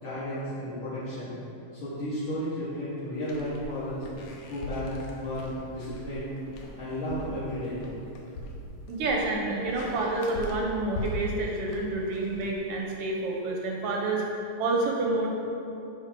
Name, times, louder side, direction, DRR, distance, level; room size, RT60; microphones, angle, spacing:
voice 1, 0.0-1.4 1.7-4.0 4.5-6.3 6.8-7.9, equal, 50° left, -14 dB, 2.5 m, -33 dB
sound 1, 3.2-13.1, left 1 dB, 70° left, 1.6 m, -40 dB
voice 2, 8.9-14.2 14.6-15.3, right 2 dB, 70° right, -1 dB, 1.4 m, -28 dB
9.9 x 3.4 x 4.4 m, 2.8 s
omnidirectional pair, 3.3 m